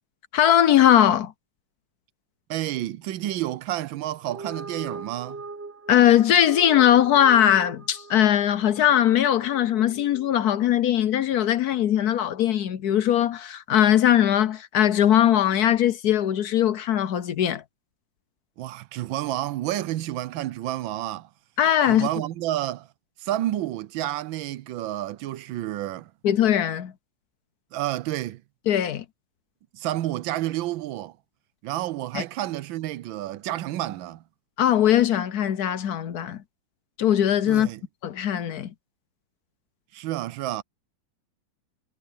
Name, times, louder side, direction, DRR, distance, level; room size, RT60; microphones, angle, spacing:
voice 1, 0.3-1.3 5.9-17.6 21.6-22.1 26.2-26.9 28.7-29.0 32.1-32.2 34.6-36.4 37.0-37.7 38.0-38.7, left 10 dB, 65° left, 1.1 m, -20 dB
voice 2, 2.5-5.4 18.6-21.3 21.8-22.9 23.2-26.1 27.7-28.4 29.7-31.1 31.6-34.2 37.5-37.8 39.9-40.6, right 14 dB, 90° right, 1.5 m, -30 dB
sound 1, 4.2-10.7, right 3 dB, 20° right, 0.4 m, -41 dB
omnidirectional pair, 2.1 m